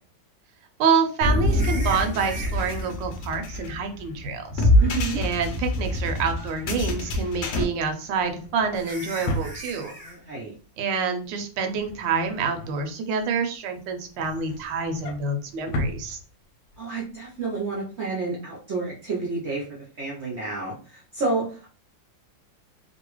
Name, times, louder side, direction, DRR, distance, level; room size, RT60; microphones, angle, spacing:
voice 1, 0.8-4.7 5.2-9.9 10.8-16.2, right 5 dB, 75° right, 5 dB, 1.3 m, -27 dB
sound 1, 1.2-7.6, left 1 dB, 65° left, 0.8 m, -25 dB
sound 2, 1.5-2.9 4.6-5.1 5.4-5.5 6.2-6.7 8.1-8.2 8.7-10.2 14.3-14.4, right 1 dB, 10° right, 0.4 m, -40 dB
voice 2, 4.8-5.2 10.0-10.5 16.8-19.6 20.0-21.7, right 3 dB, 55° right, -3 dB, 0.8 m, -30 dB
Drawer open or close, 5.4-10.2 10.6-10.9 11.2-13.4 13.8-16.8 17.1-17.3 17.6-17.7, left 1 dB, 90° left, 1.3 m, -37 dB
3.0 x 2.7 x 3.0 m, 0.38 s
omnidirectional pair, 2.0 m